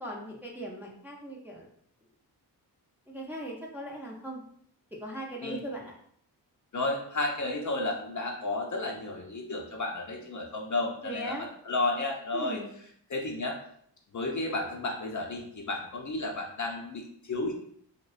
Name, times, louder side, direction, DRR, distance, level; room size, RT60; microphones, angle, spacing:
voice 1, 0.0-1.7 3.1-4.4 5.0-5.9 11.0-11.5 12.3-12.7, right 1 dB, 5° right, -3 dB, 0.5 m, -39 dB
voice 2, 6.7-12.6 13.1-13.6 14.1-17.5, left 2 dB, 45° left, 1 dB, 0.5 m, -32 dB
2.5 x 2.1 x 2.4 m, 0.65 s
cardioid pair, 50°, 43 cm